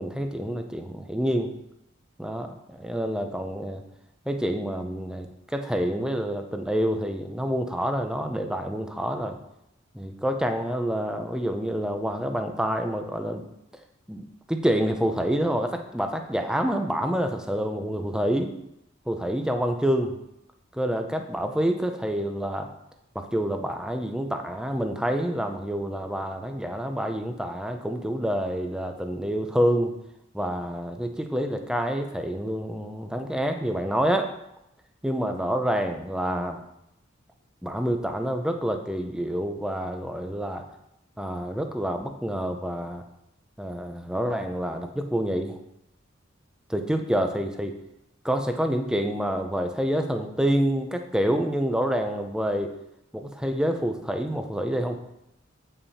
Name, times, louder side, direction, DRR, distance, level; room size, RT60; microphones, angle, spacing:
voice 1, 0.0-1.5 2.2-3.8 4.3-9.4 9.9-13.4 14.1-18.5 19.1-20.2 20.7-22.7 23.1-29.9 30.3-34.3 35.0-36.6 37.6-40.6 41.2-43.0 43.6-45.6 46.7-47.8 48.2-52.7 53.1-55.0, equal, 5° right, 5 dB, 0.6 m, -27 dB
8.9 x 5.6 x 4.2 m, 0.83 s
head